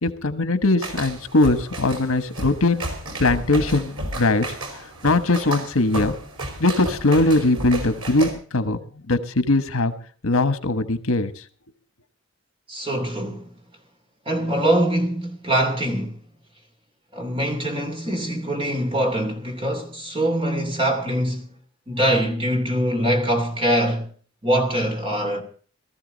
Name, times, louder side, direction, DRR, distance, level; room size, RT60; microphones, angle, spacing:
voice 1, 0.0-2.8 3.2-4.5 4.7-6.1 6.6-8.8 9.1-9.9 10.2-11.4, left 2 dB, 80° left, 1.3 m, -21 dB
tap dance practice, 0.8-8.3, right 1 dB, 90° right, 4.8 m, -32 dB
voice 2, 12.7-13.5 14.2-16.2 17.1-21.5 21.9-24.1 24.4-25.4, right 1 dB, 25° right, 2.8 m, -23 dB
19.0 x 14.0 x 4.0 m
head